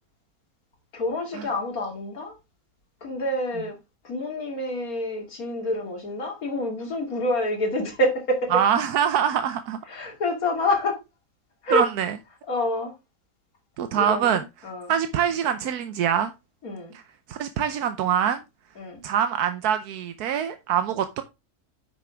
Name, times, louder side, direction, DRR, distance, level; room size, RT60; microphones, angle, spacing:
voice 1, 0.9-2.3 3.0-3.7 4.0-8.5 9.9-11.0 11.6-11.9 12.5-12.9 14.0-14.9 16.6-16.9 18.8-19.0, left 1 dB, 70° left, 2.8 m, -27 dB
voice 2, 8.5-9.8 11.7-12.2 13.8-14.4 14.9-16.3 16.9-17.0 17.3-18.4 19.0-21.2, right 9 dB, 85° right, 1.3 m, -24 dB
10.0 x 6.2 x 3.4 m
omnidirectional pair, 1.6 m